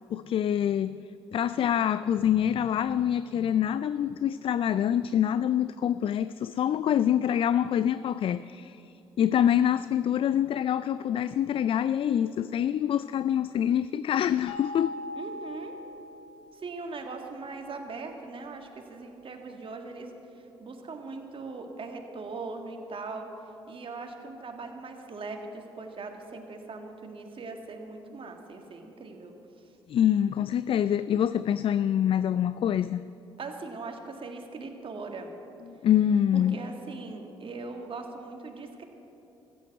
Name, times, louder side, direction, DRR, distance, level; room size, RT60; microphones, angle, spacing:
voice 1, 0.1-8.8 9.2-15.0 29.9-33.0 35.7-36.6, left 10 dB, 45° left, 15 dB, 0.3 m, -26 dB
sound 1, 14.5-16.7, left 2 dB, 75° left, 2.0 m, -40 dB
voice 2, 15.2-15.8 16.5-20.1 20.6-23.3 23.7-29.3 33.4-35.3 36.3-38.8, right 3 dB, 45° right, 4 dB, 1.8 m, -40 dB
14.5 x 8.7 x 7.8 m, 2.9 s
hypercardioid pair, 50°, 13 cm